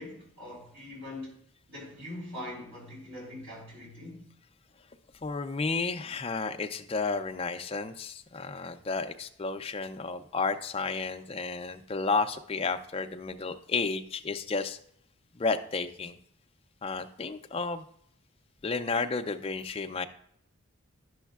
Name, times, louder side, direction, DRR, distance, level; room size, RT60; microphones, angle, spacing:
voice 1, 0.0-1.4 1.7-4.3, left 1 dB, 60° right, 3.1 m, -42 dB
voice 2, 5.2-14.8 15.3-16.2 16.8-17.8 18.6-20.0, left 4 dB, 25° left, 0.3 m, -32 dB
10.0 x 6.3 x 2.3 m
head